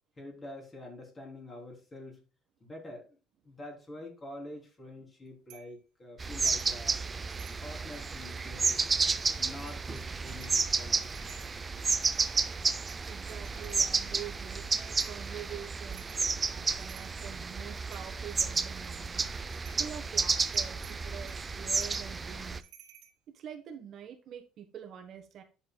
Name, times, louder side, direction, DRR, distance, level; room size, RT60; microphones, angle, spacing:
voice 1, 0.2-2.2 2.6-3.2 3.4-7.0 7.5-8.8 9.4-11.1, left 1 dB, 20° left, 0 dB, 3.4 m, -46 dB
sound 1, 5.5-5.8 6.4-6.8 7.2-8.1 8.6-9.1 9.5-10.6 11.0-13.9 15.0-15.3 15.9-16.3 16.7-17.4 17.9-18.4 18.8-19.9 20.4-23.1, right 10 dB, 80° right, 1.9 m, -56 dB
sound 2, 6.2-22.6, right 4 dB, 20° right, 0.5 m, -32 dB
voice 2, 13.1-19.2 19.8-22.6 23.3-25.4, right 9 dB, 45° right, 4 dB, 1.3 m, -45 dB
10.5 x 7.1 x 2.3 m, 0.33 s
cardioid pair, 150°, 0 cm